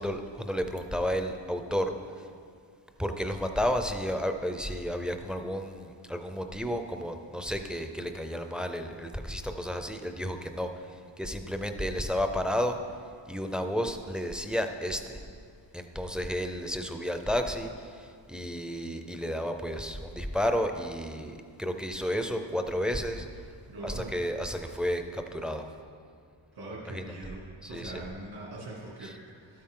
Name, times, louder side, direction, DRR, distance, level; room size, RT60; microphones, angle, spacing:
voice 1, 0.0-1.9 3.0-10.7 11.2-12.8 13.3-15.2 15.7-17.7 18.0-23.3 23.8-25.7 26.9-27.0 27.6-28.0, equal, ahead, 6 dB, 0.4 m, -32 dB
voice 2, 23.7-24.2 26.5-27.4 27.7-29.6, right 2 dB, 70° right, -5 dB, 2.4 m, -42 dB
12.5 x 8.8 x 3.7 m, 2.2 s
wide cardioid pair, 145°, 46 cm